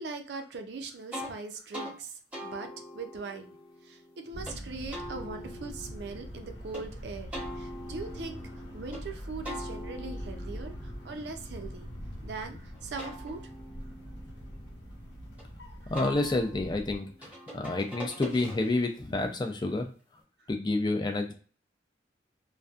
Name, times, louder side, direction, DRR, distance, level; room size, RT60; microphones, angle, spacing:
voice 1, 0.0-3.6 3.8-8.4 8.7-11.9 12.2-13.5 15.8-15.9, right 4 dB, 65° right, 6 dB, 0.4 m, -40 dB
sound 1, 1.1-1.3 1.7-1.9 2.3-4.6 4.9-6.8 7.3-9.0 9.4-12.3 12.7-15.4 15.9-18.9, equal, 10° right, 0.8 m, -44 dB
sound 2, 4.3-17.0, equal, 70° left, 0.9 m, -43 dB
voice 2, 15.9-19.9 20.5-21.3, left 2 dB, 25° left, 5 dB, 0.4 m, -29 dB
2.6 x 2.1 x 2.4 m, 0.39 s
head